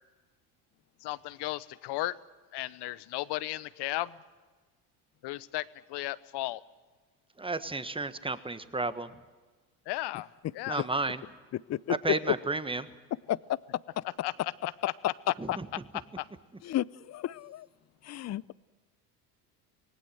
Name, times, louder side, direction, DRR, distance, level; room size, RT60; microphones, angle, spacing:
voice 1, 1.0-2.1 2.5-4.1 5.2-6.6 9.9-10.3 10.5-10.9 14.2-14.3 16.2-16.3, left 17 dB, 60° left, 18 dB, 1.0 m, -35 dB
voice 2, 7.4-9.1 10.7-11.2 12.0-12.9 15.4-15.7, right 3 dB, 10° right, 12 dB, 1.4 m, -32 dB
voice 3, 11.5-12.0 12.3-12.4 13.3-13.6 14.0-14.1 16.6-17.7 18.0-18.5, left 13 dB, 35° left, 22 dB, 0.6 m, -32 dB
25.0 x 18.5 x 7.9 m, 1.4 s
hypercardioid pair, 75°, 46 cm